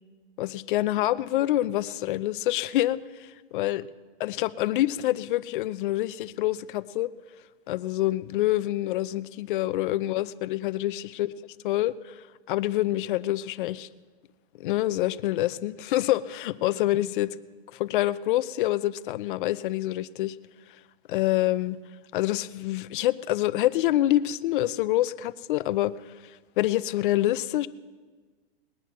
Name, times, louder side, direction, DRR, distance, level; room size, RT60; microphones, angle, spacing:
voice 1, 0.4-3.8 4.2-7.1 7.7-12.1 12.5-13.9 14.6-17.4 17.7-20.4 21.1-21.8 22.1-25.9 26.6-27.7, left 15 dB, 55° left, 16 dB, 0.6 m, -26 dB
20.0 x 8.9 x 6.1 m, 1.4 s
hypercardioid pair, 150°, 32 cm